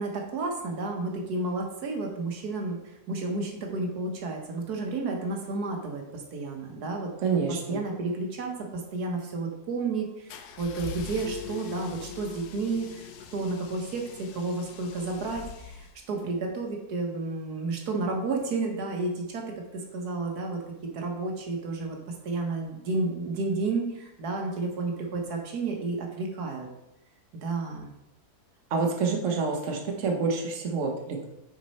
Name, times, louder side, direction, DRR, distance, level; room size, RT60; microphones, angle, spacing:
voice 1, 0.0-7.1 7.7-19.4 19.7-26.7 27.3-27.9, right 3 dB, 80° right, 2 dB, 1.6 m, -31 dB
voice 2, 7.2-7.8 28.7-31.3, right 4 dB, 55° right, 2 dB, 1.3 m, -27 dB
sound 1, 10.3-16.3, left 7 dB, 90° left, 1.2 m, -43 dB
Keyboard (musical), 11.2-14.0, left 11 dB, 45° left, 1.9 m, -46 dB
6.2 x 5.2 x 4.2 m, 0.88 s
omnidirectional pair, 1.6 m